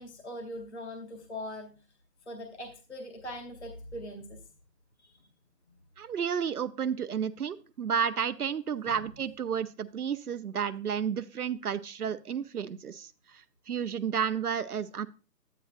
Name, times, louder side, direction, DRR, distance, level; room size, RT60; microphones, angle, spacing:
voice 1, 0.0-1.8 2.3-4.4 5.0-5.2 8.9-9.1, left 1 dB, 45° left, 3 dB, 0.9 m, -41 dB
voice 2, 6.0-15.1, right 7 dB, 65° right, 12 dB, 0.5 m, -32 dB
9.9 x 9.1 x 2.4 m, 0.33 s
hypercardioid pair, 180°, 49 cm